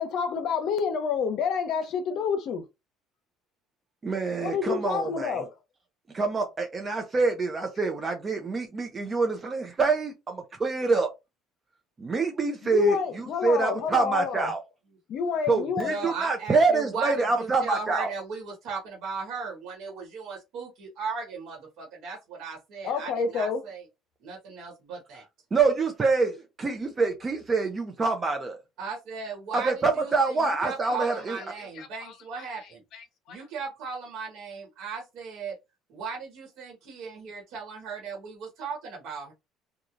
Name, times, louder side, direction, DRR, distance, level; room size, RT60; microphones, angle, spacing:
voice 1, 0.0-2.6 4.4-5.5 12.6-14.5 15.1-16.1 22.8-23.6 31.8-32.1 32.9-33.4, left 6 dB, 60° left, 0.7 m, -29 dB
voice 2, 4.0-5.4 6.1-11.1 12.0-14.6 15.5-18.1 25.5-28.6 29.5-31.4, right 3 dB, 25° right, 0.5 m, -26 dB
voice 3, 15.8-23.8 24.2-25.2 28.8-32.8 33.3-35.5 35.9-39.3, right 5 dB, 70° right, 1.3 m, -37 dB
3.0 x 2.3 x 2.5 m
cardioid pair, 125°, 0 cm